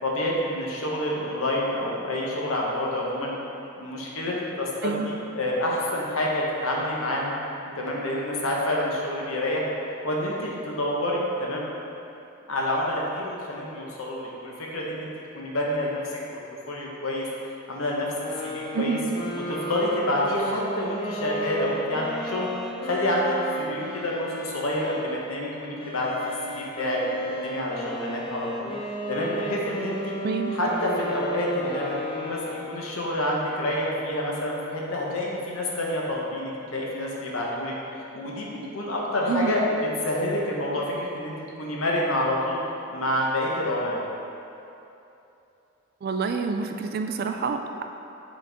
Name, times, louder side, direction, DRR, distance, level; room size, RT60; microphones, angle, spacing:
voice 1, 0.0-3.3 3.8-7.3 7.8-9.7 10.0-11.7 12.5-15.1 15.3-16.4 16.7-17.3 17.7-18.1 18.4-19.0 19.2-22.5 22.8-28.7 29.1-30.1 30.5-42.6 42.9-44.0, left 1 dB, 85° left, -3 dB, 1.0 m, -28 dB
sound 1, 18.2-25.2 25.8-32.9, equal, 25° left, 0.6 m, -34 dB
voice 2, 30.2-30.6 39.3-39.5 46.0-47.8, right 5 dB, 45° right, 6 dB, 0.3 m, -27 dB
6.4 x 4.1 x 3.5 m, 2.8 s
head